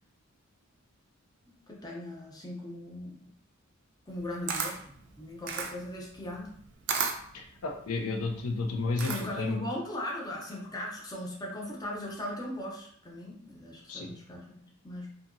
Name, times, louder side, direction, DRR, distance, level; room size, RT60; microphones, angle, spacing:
voice 1, 1.7-3.3 4.1-6.5 8.9-15.1, left 1 dB, 20° left, -2 dB, 0.6 m, -39 dB
Camera, 4.1-9.5, right 6 dB, 55° right, 0.4 m, -35 dB
voice 2, 7.3-9.6 13.9-14.1, left 3 dB, 85° left, 3 dB, 0.5 m, -32 dB
2.8 x 2.6 x 2.5 m, 0.62 s
head